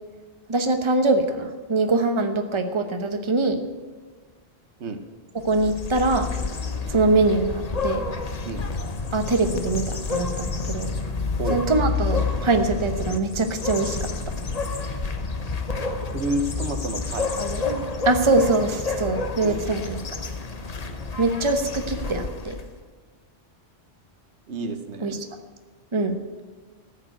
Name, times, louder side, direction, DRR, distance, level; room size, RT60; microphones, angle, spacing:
voice 1, 0.5-3.6 5.4-6.3 6.9-8.0 9.1-10.9 11.5-14.0 18.1-20.0 21.2-22.5 25.0-25.2 25.9-26.2, right 3 dB, 25° right, 6 dB, 1.1 m, -23 dB
sound 1, 5.4-22.7, left 4 dB, 35° left, 1.0 m, -29 dB
voice 2, 16.1-17.3 19.4-19.6 24.5-25.2, right 2 dB, 85° right, 8 dB, 1.4 m, -29 dB
13.5 x 7.3 x 9.1 m, 1.4 s
omnidirectional pair, 1.1 m